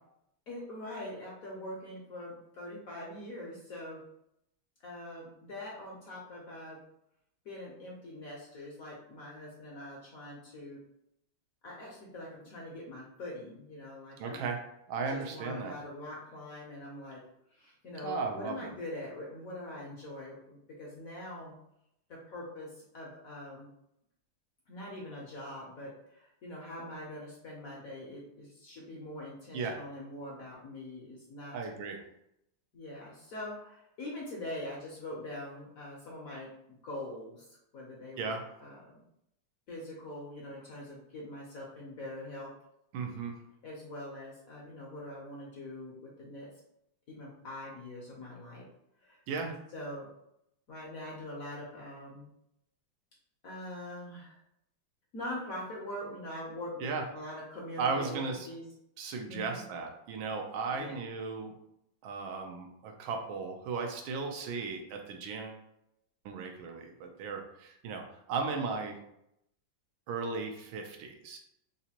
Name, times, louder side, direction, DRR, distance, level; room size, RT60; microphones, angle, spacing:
voice 1, 0.5-4.0 4.8-6.8 7.4-10.8 11.6-14.5 15.1-17.2 17.5-21.5 22.3-23.7 24.7-31.6 32.7-37.5 37.7-38.3 38.6-38.9 39.7-42.5 43.6-46.5 47.1-48.6 49.0-50.1 50.7-52.3 53.4-54.4 55.1-58.2 58.4-58.6 59.3-59.6 60.7-60.9, left 1 dB, 60° left, -4 dB, 0.9 m, -43 dB
voice 2, 14.2-14.6 14.9-15.7 18.0-18.7 29.5-29.8 31.5-32.0 38.2-38.4 42.9-43.4 49.3-49.5 56.8-57.0 57.8-58.5 59.0-61.5 62.0-65.6 66.2-69.0 70.1-71.4, right 4 dB, 85° right, 3 dB, 1.4 m, -36 dB
3.9 x 2.5 x 2.8 m, 0.78 s
omnidirectional pair, 2.2 m